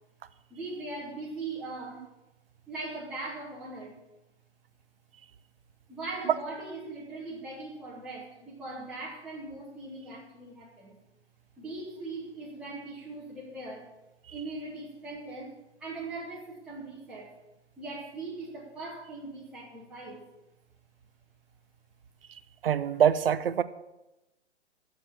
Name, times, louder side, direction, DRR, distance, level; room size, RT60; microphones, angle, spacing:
voice 1, 0.5-2.0 2.7-4.0 5.9-11.0 11.6-13.9 14.3-15.5 15.8-17.3 17.8-20.2, right 2 dB, 5° right, -9 dB, 2.2 m, -40 dB
voice 2, 22.6-23.6, right 9 dB, 55° right, 14 dB, 0.7 m, -24 dB
11.5 x 7.4 x 7.0 m, 0.97 s
figure-of-eight pair, 130°, 35 cm